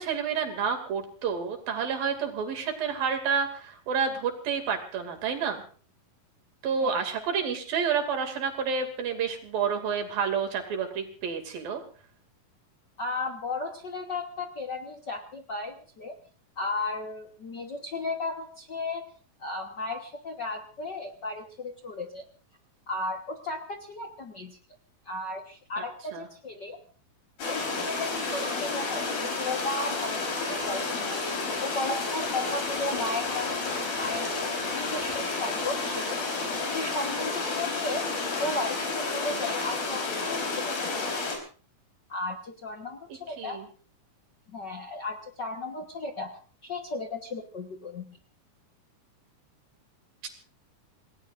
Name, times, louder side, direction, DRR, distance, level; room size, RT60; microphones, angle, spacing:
voice 1, 0.0-5.6 6.6-11.8 25.8-25.9 26.1-26.3 43.4-43.7, right 6 dB, 85° right, 5 dB, 4.4 m, -29 dB
voice 2, 13.0-16.2 16.6-19.0 19.4-22.2 22.9-24.6 25.0-26.8 27.4-31.2 31.6-33.5 33.8-34.5 34.8-36.2 36.7-38.0 38.4-41.0 42.1-43.6 44.5-48.0, left 2 dB, 55° left, 3 dB, 1.2 m, -35 dB
sound 1, 27.4-41.4, left 3 dB, 90° left, 6.2 m, -31 dB
28.0 x 18.5 x 2.6 m, 0.39 s
omnidirectional pair, 4.0 m